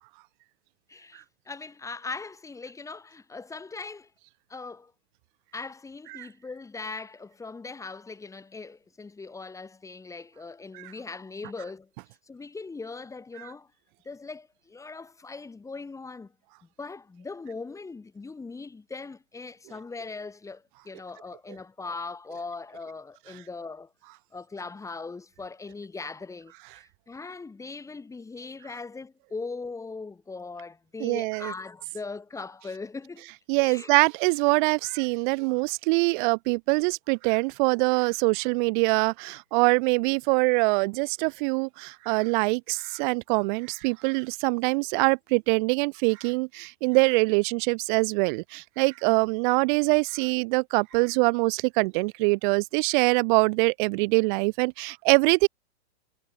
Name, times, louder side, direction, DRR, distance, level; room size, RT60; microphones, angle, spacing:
voice 1, 0.9-4.1 4.5-4.9 5.5-11.9 12.3-13.7 14.0-16.3 16.8-23.9 24.3-33.3 33.6-33.9, left 4 dB, 10° left, 6.3 m, -40 dB
voice 2, 31.0-31.5 33.5-55.5, right 30 dB, 45° right, 5.8 m, -24 dB
hypercardioid pair, 140°, 34 cm